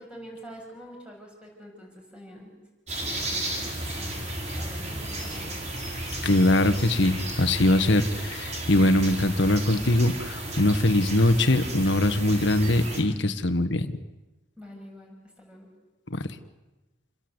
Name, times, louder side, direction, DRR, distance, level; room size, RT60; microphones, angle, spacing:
voice 1, 0.0-2.6 3.0-5.6 14.6-15.7, equal, 5° right, 0 dB, 7.1 m, -46 dB
sound 1, 2.9-13.0, right 1 dB, 35° right, 4.8 m, -34 dB
voice 2, 6.2-13.9 16.1-16.3, left 1 dB, 60° left, 9 dB, 1.7 m, -22 dB
29.0 x 21.5 x 8.2 m, 1.1 s
head